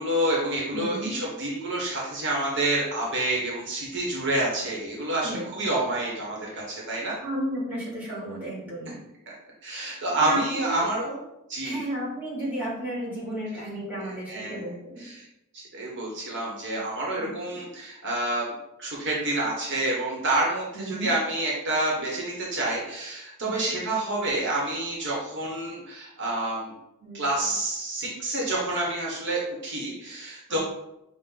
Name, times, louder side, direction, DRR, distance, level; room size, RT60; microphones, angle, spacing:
voice 1, 0.0-7.2 9.3-9.4 9.6-11.2 11.5-11.8 14.0-14.7 15.0-15.2 15.5-18.5 18.8-26.7 27.1-30.6, right 1 dB, 55° right, -3 dB, 1.0 m, -28 dB
voice 2, 0.7-1.2 5.2-5.5 7.2-9.0 9.9-10.9 11.6-15.0 17.2-17.3 20.7-21.1 23.4-23.5 27.0-27.5 30.5-30.6, right 1 dB, 5° right, -7 dB, 1.6 m, -33 dB
5.9 x 2.1 x 3.7 m, 0.87 s
head